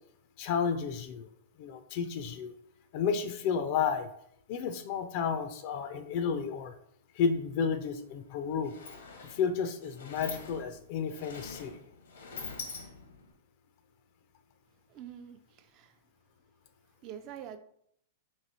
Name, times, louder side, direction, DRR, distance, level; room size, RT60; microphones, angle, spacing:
voice 1, 0.4-1.3 1.6-2.6 2.9-4.1 4.5-6.7 7.2-8.7 9.2-11.7, left 6 dB, 50° left, 8 dB, 0.4 m, -32 dB
Sliding door, 8.0-8.1 8.4-13.3, left 4 dB, 80° left, 0.9 m, -45 dB
voice 2, 14.9-15.9 17.0-17.6, right 9 dB, 40° right, 9 dB, 0.4 m, -45 dB
3.0 x 2.9 x 4.1 m, 0.68 s
hypercardioid pair, 125°, 0 cm